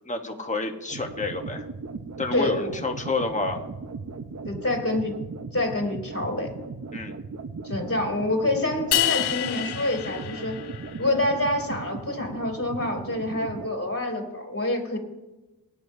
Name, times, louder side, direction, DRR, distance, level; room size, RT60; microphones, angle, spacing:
voice 1, 0.1-1.6 2.2-3.6 6.9-7.2, left 3 dB, 20° left, 3 dB, 1.1 m, -29 dB
sound 1, 0.9-13.7, right 4 dB, 45° right, 0.9 m, -37 dB
voice 2, 2.3-2.7 4.4-5.2 5.5-6.5 7.6-10.6 11.0-15.0, left 2 dB, 35° left, 2 dB, 2.8 m, -27 dB
sound 2, 8.9-11.2, left 13 dB, 80° left, 0.5 m, -28 dB
22.0 x 9.5 x 2.7 m, 1.1 s
wide cardioid pair, 65°, 39 cm